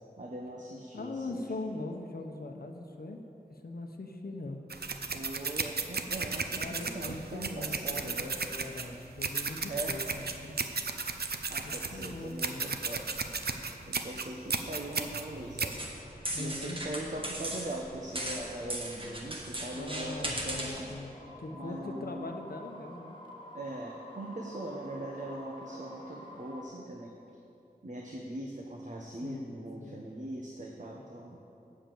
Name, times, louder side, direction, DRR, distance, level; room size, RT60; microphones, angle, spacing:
voice 1, 0.2-1.4 5.1-8.4 9.7-10.0 11.5-13.1 13.9-15.8 16.4-20.9 21.5-22.3 23.5-27.1 27.8-31.4, right 1 dB, 50° right, -1 dB, 0.9 m, -41 dB
voice 2, 0.9-3.2 3.5-4.6 6.5-10.5 11.6-12.8 16.3-16.8 19.7-23.2 29.2-29.4 29.8-30.0, left 2 dB, 70° left, 3 dB, 0.8 m, -41 dB
sound 1, 4.7-15.7, right 4 dB, 75° right, 0.6 m, -35 dB
sound 2, 15.7-20.9, right 1 dB, 35° right, 1.5 m, -38 dB
sound 3, 20.8-26.6, left 1 dB, 30° left, 1.4 m, -49 dB
8.6 x 7.0 x 7.6 m, 2.8 s
wide cardioid pair, 50°, 16 cm